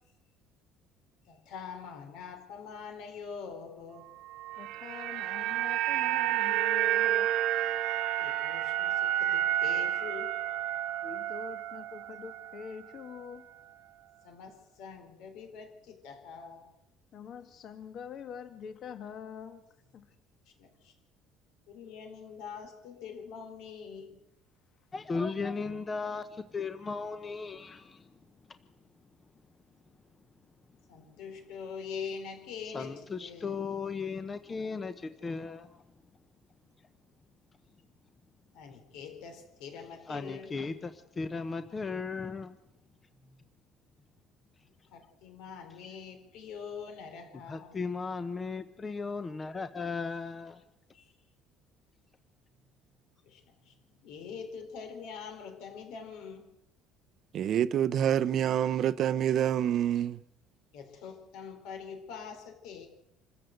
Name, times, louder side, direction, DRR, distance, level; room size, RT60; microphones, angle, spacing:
voice 1, 1.3-4.1 8.2-10.4 14.2-16.7 20.6-20.9 21.7-24.2 30.9-32.9 33.2-33.6 38.5-40.6 43.2-43.5 44.9-47.7 50.9-51.1 53.2-56.6 60.7-62.9, left 6 dB, 75° left, 4.3 m, -44 dB
sound 1, 4.4-12.7 13.0-13.1, right 12 dB, 70° right, 1.1 m, -30 dB
voice 2, 4.6-7.3 11.0-13.4 17.1-19.6 19.9-20.1, left 7 dB, 45° left, 1.5 m, -44 dB
voice 3, 24.9-28.1 32.6-35.8 40.0-42.6 47.5-50.6, left 4 dB, 20° left, 0.9 m, -36 dB
voice 4, 57.3-60.2, right 10 dB, 45° right, 0.7 m, -27 dB
26.5 x 14.0 x 8.0 m
cardioid pair, 155°, 0 cm